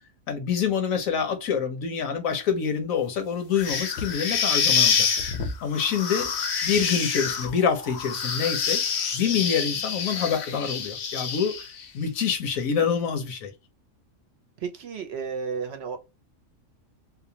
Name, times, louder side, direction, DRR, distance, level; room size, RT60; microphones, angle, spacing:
voice 1, 0.3-5.1 5.6-6.3 6.6-8.8 9.1-13.5, left 7 dB, 80° left, 1.1 m, -26 dB
sound 1, 3.5-11.8, left 6 dB, 60° left, 0.8 m, -27 dB
voice 2, 14.6-16.0, right 6 dB, 65° right, 0.7 m, -32 dB
2.8 x 2.1 x 2.7 m
omnidirectional pair, 1.4 m